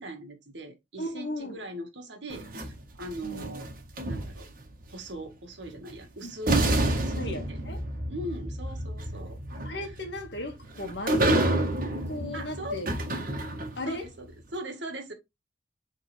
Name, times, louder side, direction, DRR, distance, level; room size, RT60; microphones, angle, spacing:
voice 1, 0.0-3.7 4.1-4.5 4.9-7.2 7.5-7.6 8.1-9.4 12.3-12.8 13.9-15.1, right 1 dB, 75° right, 1.9 m, -40 dB
voice 2, 1.0-1.6 3.2-3.5 6.2-6.3 7.2-7.8 9.6-11.6 12.1-12.9 13.8-14.1, left 1 dB, 65° left, 1.8 m, -36 dB
sound 1, 2.3-4.7 5.9-6.0 6.5-13.9, right 1 dB, 50° right, 1.6 m, -29 dB
7.8 x 3.8 x 3.4 m
head